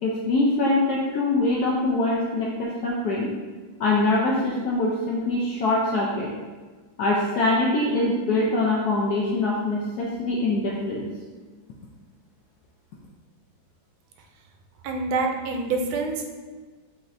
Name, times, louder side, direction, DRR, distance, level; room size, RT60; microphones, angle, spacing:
voice 1, 0.0-3.3 3.8-6.3 7.0-11.1, left 2 dB, 80° left, -3 dB, 0.8 m, -23 dB
voice 2, 14.8-16.3, right 3 dB, 90° right, 2 dB, 1.4 m, -26 dB
5.4 x 2.9 x 2.5 m, 1.4 s
omnidirectional pair, 2.2 m